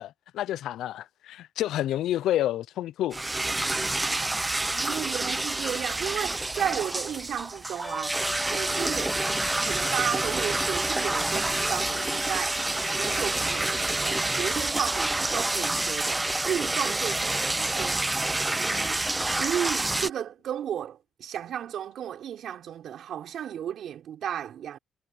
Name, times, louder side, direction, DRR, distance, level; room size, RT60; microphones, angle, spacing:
voice 1, 0.0-3.2, left 12 dB, 80° left, 0.5 m, -29 dB
sound 1, 3.1-20.1, right 2 dB, 15° right, 0.6 m, -28 dB
voice 2, 4.6-9.2 9.6-18.1 18.5-24.8, right 10 dB, 70° right, 5.2 m, -34 dB
sound 2, 7.8-17.9, left 2 dB, 20° left, 1.8 m, -40 dB
cardioid pair, 90°, 0 cm